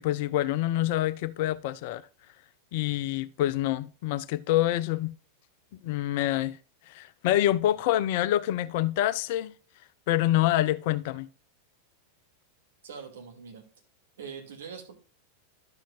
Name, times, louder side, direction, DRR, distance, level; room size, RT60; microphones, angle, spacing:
voice 1, 0.0-2.0 2.7-5.1 5.8-6.6 6.9-9.5 10.1-11.3, left 13 dB, 50° left, 0.5 m, -26 dB
voice 2, 12.8-13.6 14.2-14.9, right 6 dB, 60° right, 2.4 m, -42 dB
11.5 x 7.4 x 2.5 m
figure-of-eight pair, 90°, 0 cm